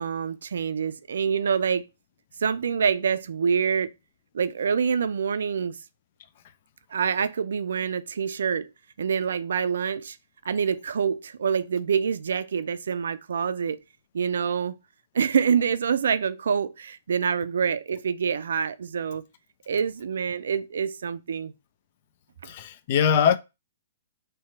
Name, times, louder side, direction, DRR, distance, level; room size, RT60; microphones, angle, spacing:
voice 1, 0.0-1.9 2.4-3.9 4.3-5.8 6.9-8.7 9.0-10.2 10.4-13.8 14.1-14.8 15.1-19.2 19.7-21.5, right 6 dB, 70° right, 0.4 m, -26 dB
voice 2, 22.4-23.4, left 7 dB, 50° left, 0.5 m, -21 dB
3.3 x 3.0 x 4.3 m
figure-of-eight pair, 120°, 0 cm